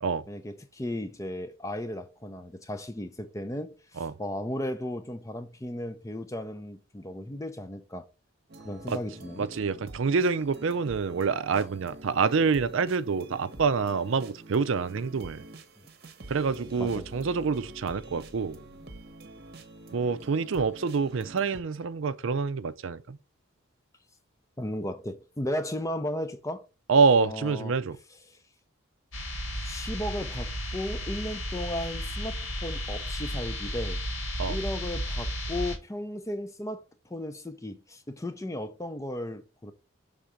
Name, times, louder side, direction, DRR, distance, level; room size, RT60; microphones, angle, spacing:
voice 1, 0.3-8.1 8.6-9.5 11.5-11.7 16.8-17.1 24.6-26.7 27.2-27.8 28.3-28.4 29.6-34.0 34.5-39.7, left 1 dB, 15° left, 0.5 m, -35 dB
sound 1, 8.5-21.6, right 2 dB, 45° right, 0.9 m, -47 dB
voice 2, 9.4-15.4 16.3-18.6 19.9-23.2 26.9-28.0 34.4-34.6, right 5 dB, 60° right, 0.5 m, -26 dB
sound 2, 29.1-35.8, equal, 70° left, 1.9 m, -33 dB
5.7 x 3.7 x 5.0 m
head